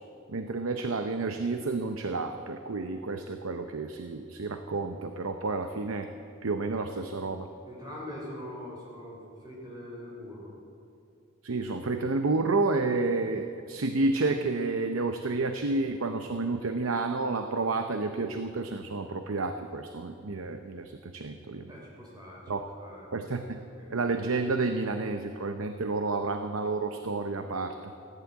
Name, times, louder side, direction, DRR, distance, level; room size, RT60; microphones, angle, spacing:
voice 1, 0.3-6.1 6.4-7.5 11.4-21.7 22.5-22.6 23.1-23.6 23.9-27.9, right 3 dB, 75° right, 7 dB, 0.7 m, -30 dB
voice 2, 7.6-10.5 21.7-22.5 22.8-23.1 23.3-23.9, left 1 dB, 20° right, -3 dB, 3.3 m, -43 dB
15.0 x 10.0 x 8.6 m, 2.6 s
head